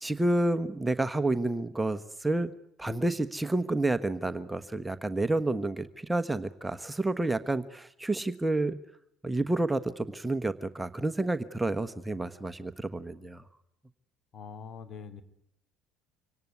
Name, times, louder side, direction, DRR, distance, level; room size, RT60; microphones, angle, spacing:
voice 1, 0.0-2.5 2.8-8.8 9.2-13.4, right 2 dB, 10° right, 10 dB, 1.2 m, -29 dB
voice 2, 14.3-15.2, left 6 dB, 50° left, 11 dB, 2.9 m, -43 dB
25.5 x 18.0 x 9.5 m, 0.72 s
hypercardioid pair, 70°, 0 cm